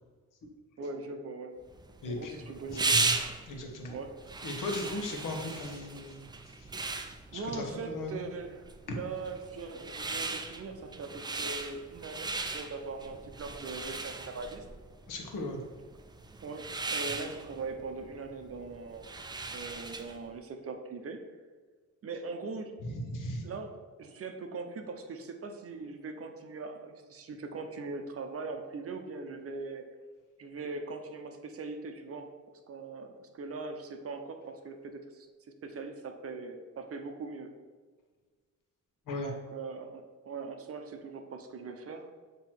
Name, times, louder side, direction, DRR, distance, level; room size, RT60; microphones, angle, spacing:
voice 1, 0.8-1.6 2.0-3.0 3.9-4.1 4.9-5.0 7.3-14.6 16.4-19.1 19.5-21.2 22.0-22.8 23.4-23.7 24.0-29.8 30.4-32.3 32.7-35.3 35.6-37.5 39.2-42.1, right 4 dB, 45° right, 6 dB, 0.7 m, -41 dB
sound 1, 1.7-20.2, right 3 dB, 15° right, 0.3 m, -37 dB
voice 2, 3.5-4.0 4.4-6.3 7.3-8.2 8.9-9.0 15.1-15.6 22.8-23.4 39.1-39.3, left 2 dB, 85° left, 2 dB, 1.2 m, -37 dB
7.5 x 3.0 x 4.5 m, 1.5 s
cardioid pair, 135°, 31 cm